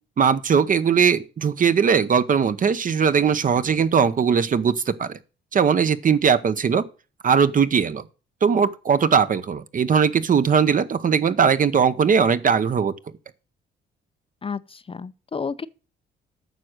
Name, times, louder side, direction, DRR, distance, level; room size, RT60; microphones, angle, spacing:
voice 1, 0.2-5.2 5.5-6.9 7.2-8.0 8.4-12.9, right 6 dB, 40° right, 0.8 m, -19 dB
voice 2, 14.4-15.7, left 5 dB, 30° left, 0.5 m, -31 dB
9.3 x 6.1 x 6.5 m
cardioid pair, 90°, 20 cm